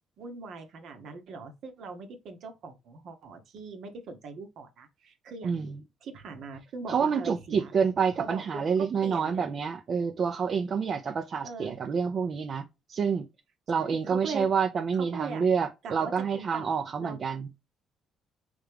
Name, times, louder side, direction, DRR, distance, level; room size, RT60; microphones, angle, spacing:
voice 1, 0.2-5.6 6.0-7.7 8.2-9.6 11.4-11.8 13.7-14.5 14.9-15.5 15.8-16.7 17.0-17.2, right 4 dB, 65° right, 1.0 m, -41 dB
voice 2, 5.4-5.8 6.9-13.3 13.7-17.5, right 6 dB, 50° right, 0.5 m, -28 dB
3.6 x 3.4 x 3.4 m
supercardioid pair, 60°, 0 cm